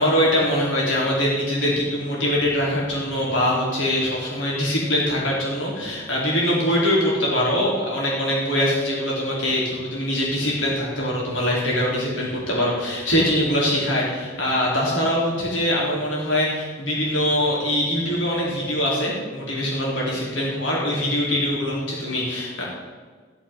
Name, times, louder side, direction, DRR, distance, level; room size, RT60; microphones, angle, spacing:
voice 1, 0.0-22.6, equal, 80° left, -5 dB, 4.6 m, -23 dB
15.5 x 6.6 x 9.6 m, 1.5 s
head